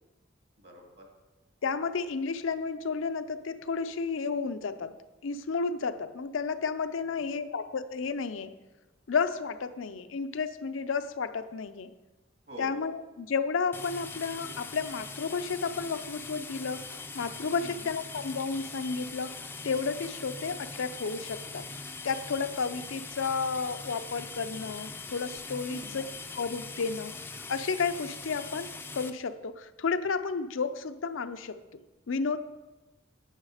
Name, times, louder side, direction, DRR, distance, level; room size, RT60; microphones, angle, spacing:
voice 1, 0.6-1.0 7.1-7.3 12.5-12.8 17.6-17.9 25.7-26.0, left 1 dB, 55° right, 1 dB, 2.0 m, -46 dB
voice 2, 1.6-5.0 5.2-8.6 9.1-11.9 12.6-27.2 27.5-31.8 32.1-32.4, left 5 dB, 80° left, 10 dB, 0.5 m, -32 dB
sound 1, 13.7-29.1, left 4 dB, 10° left, 0.4 m, -42 dB
9.5 x 8.3 x 4.9 m, 1.1 s
head